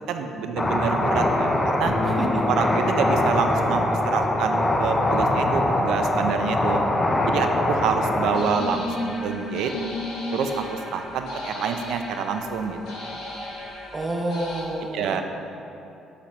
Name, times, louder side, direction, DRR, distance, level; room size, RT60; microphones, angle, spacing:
voice 1, 0.1-1.9 2.5-6.8 7.3-9.7 10.3-13.2 14.9-15.2, right 6 dB, 80° right, 6 dB, 0.5 m, -27 dB
sound 1, 0.6-8.4, left 1 dB, 20° left, 0.6 m, -23 dB
Bass guitar, 1.9-8.1, left 2 dB, 50° left, 1.0 m, -34 dB
voice 2, 2.0-2.4 13.3-13.5 13.9-15.2, right 1 dB, 20° right, 3 dB, 0.6 m, -29 dB
sound 2, 8.3-14.6, left 1 dB, 75° left, 1.5 m, -34 dB
8.3 x 5.0 x 3.1 m, 2.8 s
cardioid pair, 115°, 0 cm